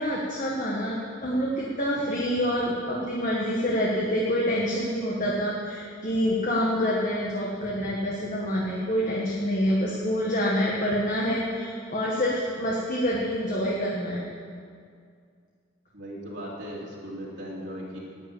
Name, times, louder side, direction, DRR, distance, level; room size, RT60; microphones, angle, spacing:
voice 1, 0.0-14.3, equal, 40° left, -4 dB, 1.6 m, -27 dB
voice 2, 15.9-18.0, equal, 60° right, -6 dB, 2.9 m, -37 dB
11.0 x 9.8 x 8.5 m, 2.2 s
head